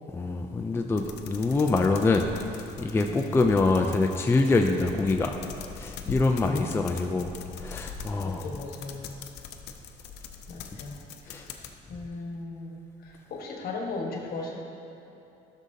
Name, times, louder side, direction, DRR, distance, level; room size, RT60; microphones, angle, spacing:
voice 1, 0.1-2.3 2.6-5.4 5.7-7.3 7.6-8.4 11.3-11.4, left 3 dB, 15° left, 4 dB, 0.4 m, -25 dB
sound 1, 1.0-11.7, left 6 dB, 85° left, 0.6 m, -42 dB
voice 2, 8.2-9.2 10.5-11.0 11.2-14.6, left 3 dB, 60° left, 0 dB, 1.3 m, -38 dB
12.0 x 6.4 x 2.7 m, 2.9 s
cardioid pair, 110°, 17 cm